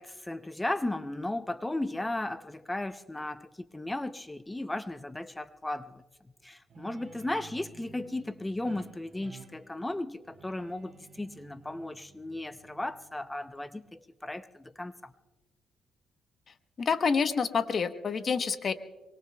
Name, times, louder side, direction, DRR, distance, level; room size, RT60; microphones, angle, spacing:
voice 1, 0.0-6.0 6.4-15.1, left 1 dB, 10° left, 0.5 m, -35 dB
Guitar, 6.7-13.9, right 5 dB, 50° right, 3.1 m, -54 dB
voice 2, 16.5-18.7, left 5 dB, 45° left, 0.9 m, -28 dB
24.0 x 23.5 x 2.2 m
cardioid pair, 90°, 0 cm